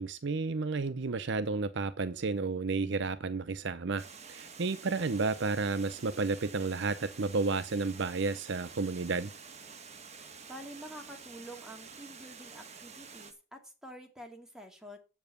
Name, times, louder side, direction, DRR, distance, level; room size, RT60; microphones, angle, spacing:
voice 1, 0.0-9.3, right 3 dB, 60° right, 0.6 m, -32 dB
Water, 4.0-13.3, right 5 dB, 35° right, 1.3 m, -49 dB
voice 2, 10.5-15.0, equal, 5° right, 2.3 m, -48 dB
8.0 x 7.2 x 6.8 m
head